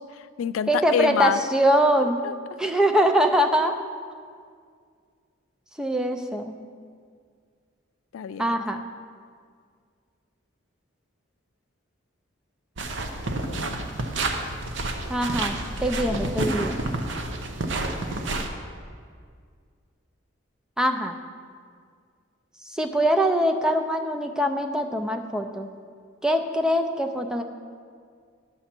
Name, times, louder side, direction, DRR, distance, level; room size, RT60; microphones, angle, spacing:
voice 1, 0.1-1.4 2.0-2.3 8.1-8.8 13.2-13.8, left 8 dB, 85° left, 14 dB, 0.3 m, -28 dB
voice 2, 0.7-2.2 2.6-3.7 5.8-6.6 8.4-8.8 15.1-16.8 20.8-21.2 22.6-25.7 26.2-27.4, equal, 5° right, 5 dB, 0.4 m, -23 dB
sound 1, 12.8-18.5, right 2 dB, 65° right, 0.7 m, -29 dB
10.5 x 7.1 x 4.4 m, 2.1 s
head